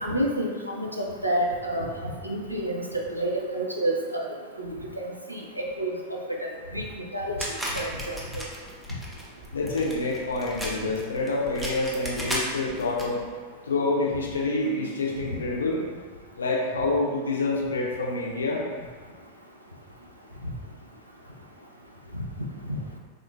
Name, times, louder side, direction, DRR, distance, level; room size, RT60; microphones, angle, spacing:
voice 1, 0.0-4.7 5.3-6.8 7.1-7.4 7.7-8.5, right 1 dB, 85° right, -1 dB, 0.4 m, -29 dB
sound 1, 7.4-13.0, equal, 5° right, 0.6 m, -35 dB
voice 2, 9.5-13.2 13.7-15.8 16.4-18.6, left 2 dB, 70° left, -2 dB, 0.5 m, -27 dB
3.5 x 2.6 x 2.4 m, 1.5 s
figure-of-eight pair, 90°, 0 cm